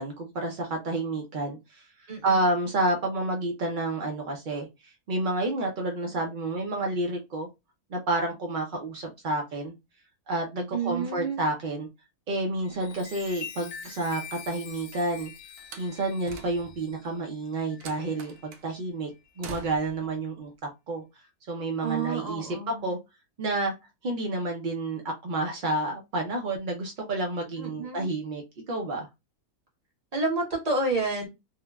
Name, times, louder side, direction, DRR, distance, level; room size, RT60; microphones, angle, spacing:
voice 1, 0.0-1.8 2.2-7.5 7.9-9.7 10.3-11.9 12.3-15.3 15.8-19.1 19.4-20.5 20.9-21.0 21.5-22.5 22.8-23.0 23.4-23.7 24.0-29.1, right 2 dB, 70° right, 1 dB, 0.4 m, -30 dB
voice 2, 2.1-2.4 10.7-11.4 21.8-22.9 27.6-28.1 30.1-31.3, right 3 dB, 30° right, -1 dB, 1.0 m, -29 dB
Chime, 12.6-18.5 19.1-19.4, left 7 dB, 65° left, 0.8 m, -45 dB
Slam, 15.6-16.9 17.8-18.7 19.4-20.1, right 4 dB, 90° right, 1.1 m, -45 dB
3.2 x 2.1 x 2.2 m, 0.22 s
omnidirectional pair, 1.6 m